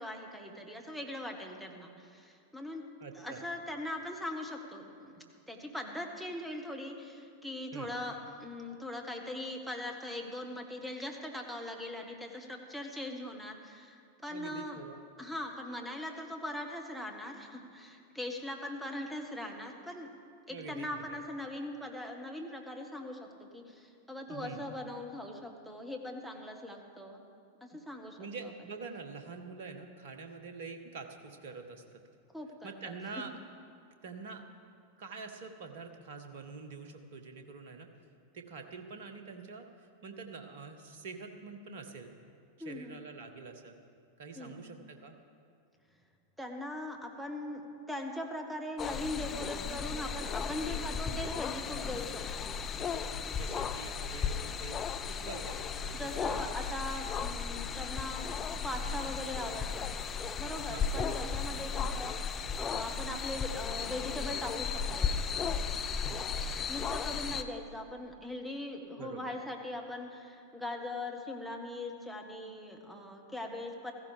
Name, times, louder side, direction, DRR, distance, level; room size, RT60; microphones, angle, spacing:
voice 1, 0.0-2.9 3.1-14.8 15.2-20.1 20.5-27.2 27.6-28.5 32.3-32.9 42.6-43.0 44.4-44.8 46.4-52.5 56.0-59.9 60.4-65.1 66.7-73.9, left 1 dB, 5° right, 3 dB, 1.5 m, -41 dB
voice 2, 3.0-3.5 7.7-8.0 14.3-15.0 20.5-21.2 24.3-24.7 28.2-32.0 32.6-33.4 34.0-34.5 35.0-37.9 38.3-42.1 42.6-43.7 44.2-45.1 53.3-56.4 60.7-60.9 66.0-66.2 69.0-69.4, right 4 dB, 55° right, 6 dB, 1.3 m, -46 dB
sound 1, 48.8-67.4, left 6 dB, 25° left, 0.6 m, -35 dB
16.0 x 14.5 x 3.5 m, 2.3 s
figure-of-eight pair, 90°, 0 cm